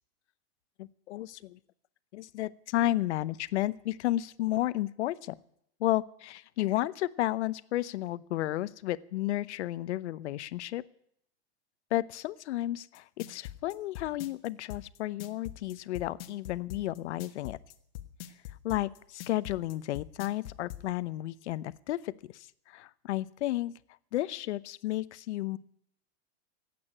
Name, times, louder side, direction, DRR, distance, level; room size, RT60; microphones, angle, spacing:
voice 1, 0.8-1.6 2.1-5.3 5.8-10.9 11.9-17.6 18.6-23.7 24.1-25.6, left 15 dB, 80° left, 18 dB, 0.8 m, -32 dB
sound 1, 12.9-20.8, left 14 dB, 60° left, 1.4 m, -42 dB
15.0 x 8.7 x 9.9 m, 0.70 s
supercardioid pair, 165°, 33 cm